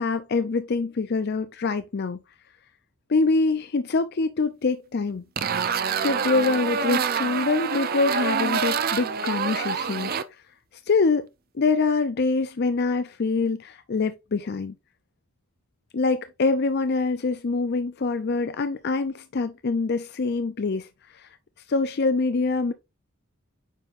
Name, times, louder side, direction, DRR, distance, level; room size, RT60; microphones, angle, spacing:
voice 1, 0.0-2.2 3.1-5.6 6.0-10.1 10.9-11.3 11.5-14.7 15.9-21.3 21.7-22.7, left 3 dB, 50° left, 0.5 m, -25 dB
sound 1, 5.4-10.2, right 6 dB, 45° right, 0.6 m, -26 dB
9.1 x 5.4 x 2.5 m
head